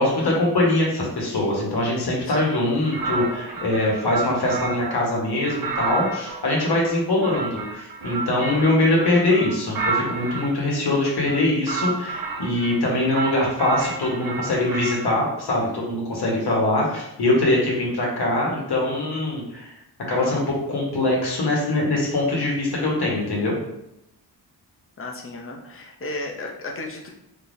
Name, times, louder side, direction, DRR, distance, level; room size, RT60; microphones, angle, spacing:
voice 1, 0.0-19.7 20.1-20.4 20.7-23.6, left 2 dB, 65° left, -2 dB, 1.4 m, -22 dB
sound 1, 2.9-5.0 5.4-10.5 11.2-12.8 13.1-15.1, right 4 dB, 55° right, 0.7 m, -30 dB
voice 2, 25.0-27.1, left 2 dB, 30° left, 0 dB, 0.8 m, -34 dB
4.3 x 3.4 x 2.7 m, 0.84 s
cardioid pair, 85°, 42 cm